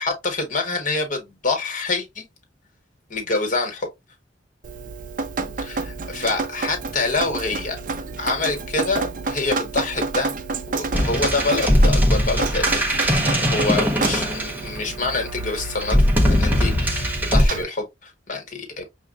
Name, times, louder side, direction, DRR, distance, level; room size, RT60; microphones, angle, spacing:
voice 1, 0.0-2.3 3.1-3.9 5.6-7.8 8.2-10.3 10.7-13.0 13.3-16.0 16.3-18.8, left 3 dB, 45° left, 1.3 m, -26 dB
Drip, 4.6-17.6, right 4 dB, 45° right, 0.5 m, -30 dB
sound 1, 10.9-15.0 15.8-17.5, equal, 10° right, 0.7 m, -19 dB
6.1 x 2.4 x 2.4 m
head